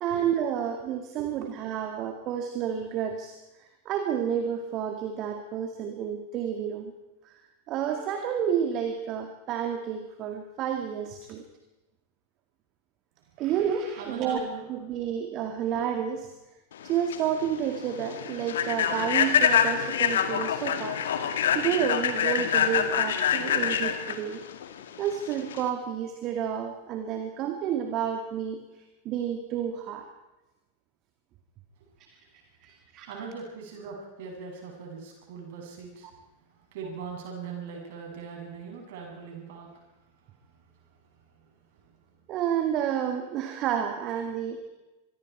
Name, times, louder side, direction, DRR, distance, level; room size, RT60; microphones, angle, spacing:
voice 1, 0.0-6.9 7.2-7.3 7.7-11.4 13.4-14.4 14.7-16.3 16.8-21.0 21.5-24.4 25.0-28.6 29.1-30.1 32.6-33.1 42.3-44.7, right 8 dB, 35° right, 6 dB, 2.1 m, -30 dB
voice 2, 14.0-14.7 33.1-36.1 36.5-39.8 41.3-41.9, right 5 dB, 50° right, 1 dB, 7.8 m, -40 dB
Human voice / Train, 16.8-25.7, left 8 dB, 60° left, 2.0 m, -26 dB
25.5 x 22.5 x 4.7 m, 1.0 s
figure-of-eight pair, 90°, 0 cm